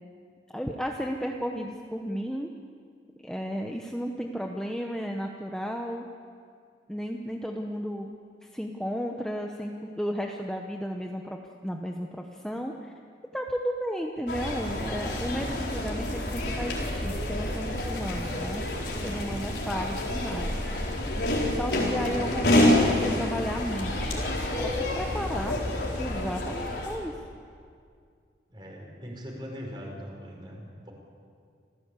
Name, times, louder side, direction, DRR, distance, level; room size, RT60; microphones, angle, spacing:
voice 1, 0.5-2.5 3.2-6.1 6.9-8.1 8.4-12.9 13.3-18.7 19.0-20.6 21.5-24.2 24.6-25.6 26.0-27.1, equal, 5° left, 1 dB, 0.9 m, -33 dB
sound 1, 14.3-27.0, left 1 dB, 75° left, 4.4 m, -28 dB
voice 2, 21.9-22.5 28.5-30.9, equal, 25° right, 0 dB, 5.0 m, -41 dB
27.0 x 15.5 x 8.3 m, 2.2 s
head